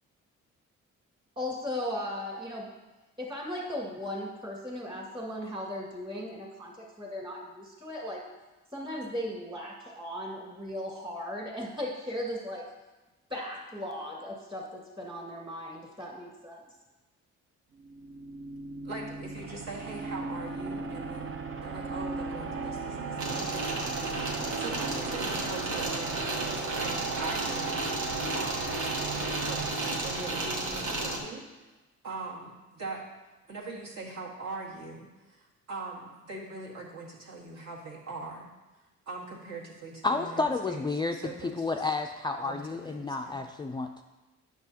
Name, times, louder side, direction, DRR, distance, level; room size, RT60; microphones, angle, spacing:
voice 1, 1.4-2.7 3.2-8.2 8.7-12.7 13.3-16.6, left 1 dB, 15° right, -2 dB, 2.1 m, -37 dB
sound 1, 17.8-30.9, right 4 dB, 45° right, 0.6 m, -37 dB
voice 2, 18.8-23.5 24.5-27.8 28.3-28.8 29.3-31.4 32.0-33.0 33.5-38.5 39.1-40.8 41.1-41.8 42.4-43.4, right 3 dB, 60° right, -4 dB, 2.0 m, -41 dB
sound 2, 23.2-31.2, right 2 dB, 75° right, 1.4 m, -33 dB
voice 3, 40.0-44.0, left 3 dB, 15° left, 3 dB, 0.3 m, -31 dB
9.1 x 6.5 x 2.8 m, 1.1 s
cardioid pair, 90°, 30 cm